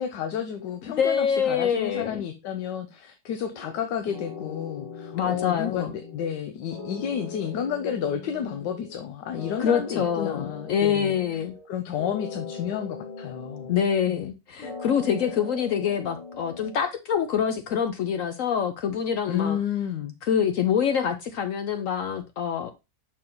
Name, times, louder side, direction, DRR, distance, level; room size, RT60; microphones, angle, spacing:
voice 1, 0.0-11.2 11.7-13.7 14.1-14.3 19.3-20.1, left 8 dB, 85° left, 1.3 m, -31 dB
voice 2, 1.0-2.2 5.1-5.9 9.6-11.5 13.7-19.6 20.2-22.7, left 8 dB, 65° left, 0.8 m, -25 dB
sound 1, 3.5-3.8 4.1-6.4 6.7-9.0 9.3-11.7 12.0-14.3 14.6-16.9, left 4 dB, 40° left, 0.5 m, -40 dB
6.2 x 4.4 x 3.8 m
omnidirectional pair, 1.8 m